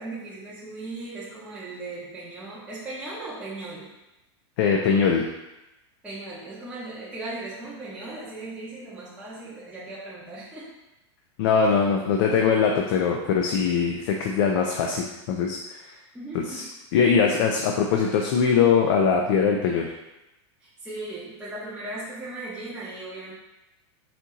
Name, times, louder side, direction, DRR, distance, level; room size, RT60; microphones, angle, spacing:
voice 1, 0.0-3.9 6.0-10.7 16.1-16.7 20.6-23.3, right 2 dB, 5° right, -10 dB, 0.7 m, -37 dB
voice 2, 4.6-5.2 11.4-15.6 15.9-16.0 16.3-16.6 16.9-19.9, left 6 dB, 50° left, 1 dB, 0.5 m, -22 dB
4.3 x 2.7 x 3.6 m, 0.97 s
supercardioid pair, 155°, 15 cm